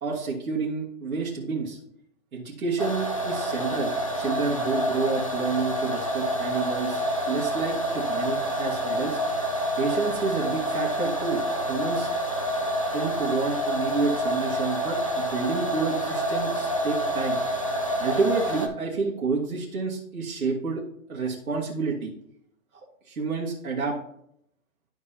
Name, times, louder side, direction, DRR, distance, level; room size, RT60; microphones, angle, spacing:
voice 1, 0.0-1.8 2.3-7.0 7.3-9.2 9.8-12.1 12.9-17.4 18.0-20.8 21.1-22.1 23.1-24.0, right 4 dB, 90° right, -5 dB, 2.1 m, -29 dB
sound 1, 2.8-18.7, right 1 dB, 25° left, 0.4 m, -28 dB
12.0 x 4.7 x 2.9 m, 0.71 s
hypercardioid pair, 170°, 42 cm